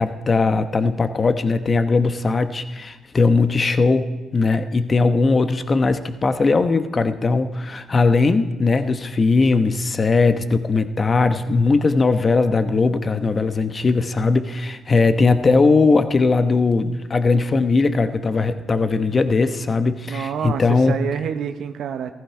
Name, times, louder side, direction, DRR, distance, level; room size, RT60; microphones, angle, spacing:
voice 1, 0.0-20.9, left 3 dB, 35° left, 10 dB, 0.9 m, -19 dB
voice 2, 20.1-22.1, right 8 dB, 65° right, 7 dB, 0.7 m, -27 dB
14.5 x 13.0 x 4.8 m, 1.3 s
hypercardioid pair, 55°, 0 cm